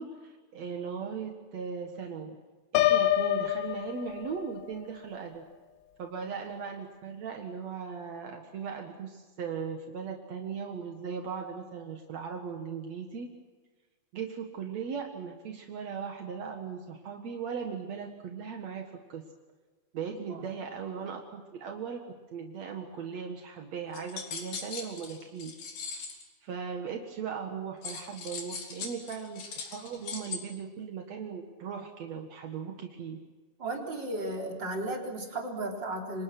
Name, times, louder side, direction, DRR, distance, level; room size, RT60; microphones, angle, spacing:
voice 1, 0.0-2.4 2.7-5.4 6.0-13.3 14.1-19.2 19.9-22.0 22.3-25.5 25.9-26.0 26.4-33.2, right 6 dB, 55° right, 3 dB, 1.9 m, -38 dB
Piano, 2.8-4.7, left 13 dB, 80° left, 3.4 m, -26 dB
sound 1, 23.9-26.2 27.8-30.4, left 5 dB, 55° left, 5.2 m, -39 dB
voice 2, 33.6-36.2, right 2 dB, 25° right, 0 dB, 4.1 m, -34 dB
29.0 x 26.0 x 6.2 m, 1.3 s
omnidirectional pair, 5.6 m